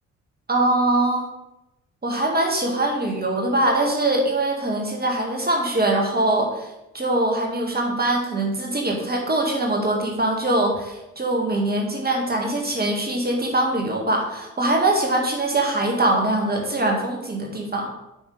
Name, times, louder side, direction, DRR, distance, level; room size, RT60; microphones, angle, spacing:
voice 1, 0.5-1.3 2.0-6.7 6.9-17.9, right 2 dB, 25° right, 1 dB, 1.9 m, -22 dB
8.3 x 5.4 x 3.4 m, 0.92 s
figure-of-eight pair, 40°, 39 cm